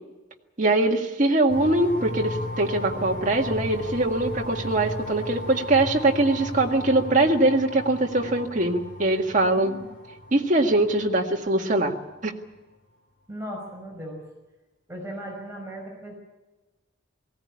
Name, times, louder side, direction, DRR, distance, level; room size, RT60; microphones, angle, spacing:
voice 1, 0.6-9.7 10.3-12.0 12.2-12.3, right 2 dB, 40° right, 1 dB, 2.0 m, -22 dB
sound 1, 1.5-12.0, left 1 dB, 45° left, 4.6 m, -36 dB
voice 2, 9.6-9.9 13.3-14.2 14.9-16.2, equal, 15° right, -1 dB, 5.4 m, -37 dB
19.5 x 17.0 x 9.7 m, 1.1 s
head